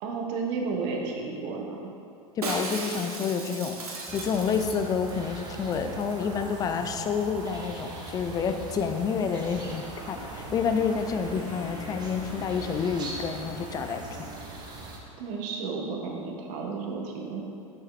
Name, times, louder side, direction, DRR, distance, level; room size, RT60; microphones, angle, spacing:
voice 1, 0.0-1.9 15.2-17.4, right 4 dB, 50° right, 0 dB, 1.0 m, -32 dB
voice 2, 2.4-3.8 4.1-14.0, left 6 dB, 20° left, 7 dB, 0.3 m, -29 dB
Shatter, 2.4-5.2 5.4-5.5 5.7-6.1 6.4-6.5, right 3 dB, 80° right, 0.9 m, -36 dB
sound 1, 4.1-15.0, right 3 dB, 20° right, 0.9 m, -40 dB
sound 2, 6.9-15.1, left 2 dB, 55° left, 1.5 m, -45 dB
5.7 x 5.4 x 3.3 m, 2.5 s
hypercardioid pair, 95°, 19 cm